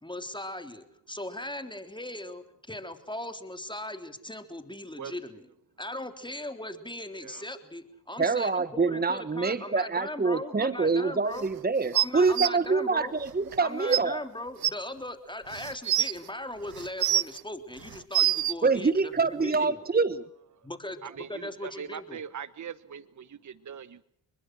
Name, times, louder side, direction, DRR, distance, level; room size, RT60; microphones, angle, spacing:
voice 1, 0.0-5.5 5.8-11.5 11.9-13.2 13.6-19.8 20.6-22.2, left 1 dB, 10° left, 3.5 m, -39 dB
voice 2, 8.2-14.2 18.6-20.2, right 4 dB, 20° right, 1.2 m, -26 dB
sound 1, 11.9-12.5 13.5-13.6 13.9-14.0 14.6-14.7 15.5-16.1 16.8-17.4 17.9-18.5 19.5-19.6, right 13 dB, 60° right, 0.9 m, -25 dB
voice 3, 21.0-24.0, right 8 dB, 45° right, 1.1 m, -41 dB
29.0 x 21.0 x 6.4 m
supercardioid pair, 50°, 41 cm